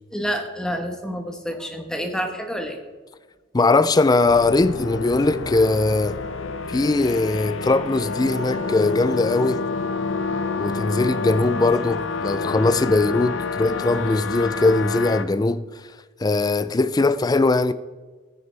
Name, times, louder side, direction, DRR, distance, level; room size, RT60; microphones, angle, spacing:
voice 1, 0.1-2.8, equal, 5° left, 1.2 m, -28 dB
voice 2, 3.5-6.2 6.7-9.7 10.6-15.6 16.2-17.7, left 3 dB, 20° left, 0.4 m, -20 dB
sound 1, 4.2-15.2, left 4 dB, 75° left, 0.7 m, -28 dB
15.5 x 9.4 x 3.4 m
head